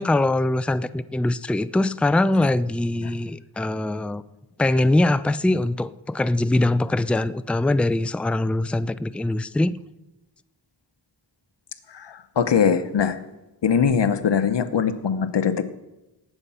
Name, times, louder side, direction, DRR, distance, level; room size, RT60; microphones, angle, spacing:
voice 1, 0.0-4.2 4.6-9.8, left 2 dB, 5° left, 14 dB, 0.4 m, -22 dB
voice 2, 11.9-13.2 13.6-15.6, left 7 dB, 90° left, 11 dB, 1.0 m, -21 dB
18.5 x 8.1 x 5.6 m, 1.0 s
wide cardioid pair, 75°, 41 cm